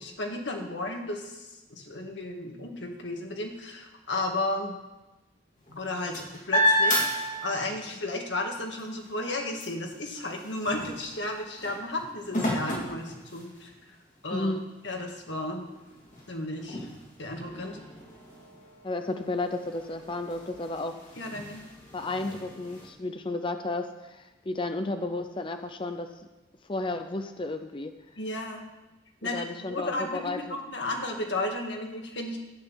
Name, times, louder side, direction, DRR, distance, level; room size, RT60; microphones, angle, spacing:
voice 1, 0.0-4.8 5.8-13.7 14.2-14.5 14.8-15.6 16.3-16.9 17.2-17.8 21.2-21.7 28.2-28.7 29.2-32.4, left 2 dB, 90° left, 2 dB, 2.0 m, -34 dB
sound 1, 5.6-8.0 8.4-13.8 14.5-14.6 14.9-22.9, equal, 45° left, 3.6 m, -32 dB
voice 2, 14.3-14.6 18.8-20.9 21.9-26.1 26.7-27.9 29.2-30.4, left 2 dB, 30° left, 7 dB, 0.6 m, -32 dB
11.0 x 9.3 x 7.2 m, 1.1 s
head